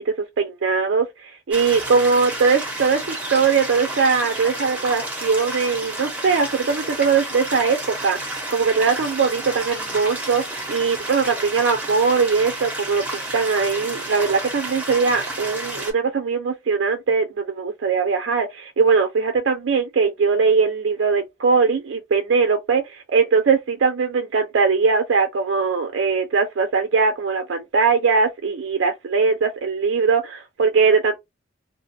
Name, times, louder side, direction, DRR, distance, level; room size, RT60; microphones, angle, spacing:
voice 1, 0.0-31.2, right 5 dB, 60° right, 0.4 m, -21 dB
sound 1, 1.5-15.9, right 1 dB, 5° right, 0.7 m, -31 dB
2.5 x 2.2 x 2.6 m
head